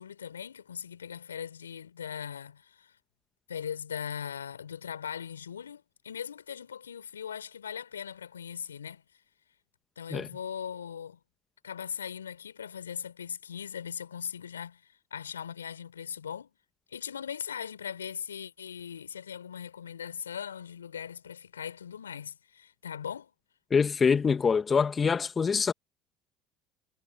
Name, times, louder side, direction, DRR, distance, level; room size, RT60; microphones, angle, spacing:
voice 1, 0.0-2.9 3.5-9.0 10.0-11.2 11.6-14.8 15.1-16.5 16.9-23.3, left 8 dB, 85° left, 5.0 m, -39 dB
voice 2, 23.7-25.7, left 5 dB, 30° left, 2.2 m, -25 dB
figure-of-eight pair, 60°, 0 cm